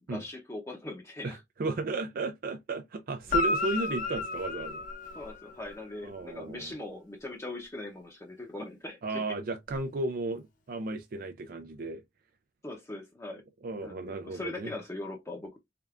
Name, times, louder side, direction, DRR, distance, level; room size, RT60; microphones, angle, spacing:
voice 1, 0.1-1.4 5.1-9.2 12.6-13.4 13.8-15.6, left 2 dB, 15° left, 0.7 m, -40 dB
voice 2, 1.2-4.8 6.0-6.7 9.0-12.0 13.6-14.7, right 2 dB, 50° right, 0.4 m, -34 dB
Guitar, 3.2-5.8 9.7-9.8, left 3 dB, 45° left, 0.8 m, -32 dB
3.7 x 3.4 x 2.3 m
head